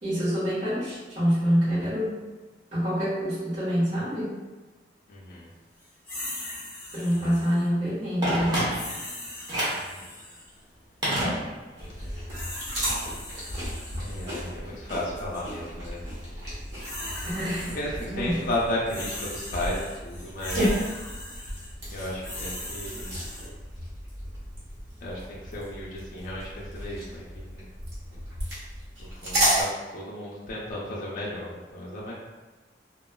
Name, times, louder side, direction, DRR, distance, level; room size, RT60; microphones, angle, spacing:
voice 1, 0.0-2.2 2.7-4.3 6.9-8.6 17.2-17.7 18.1-18.4, equal, 40° right, -12 dB, 1.1 m, -26 dB
voice 2, 5.1-5.5 7.2-7.4 9.7-10.1 11.9-12.2 13.9-16.6 17.7-20.8 21.9-23.2 25.0-27.6 29.0-32.1, left 1 dB, 50° left, -5 dB, 0.4 m, -34 dB
sound 1, 6.0-7.7 8.7-10.5 12.0-14.4 15.1-15.4 16.5-18.0 18.3-23.5, left 1 dB, 15° left, 1.1 m, -39 dB
Telephone, 8.2-9.1 9.5-9.9 11.0-11.9 12.2-12.3, right 1 dB, 20° right, 0.8 m, -28 dB
sound 2, 11.8-29.6, equal, 65° right, 1.1 m, -33 dB
3.0 x 2.2 x 2.2 m, 1.2 s
head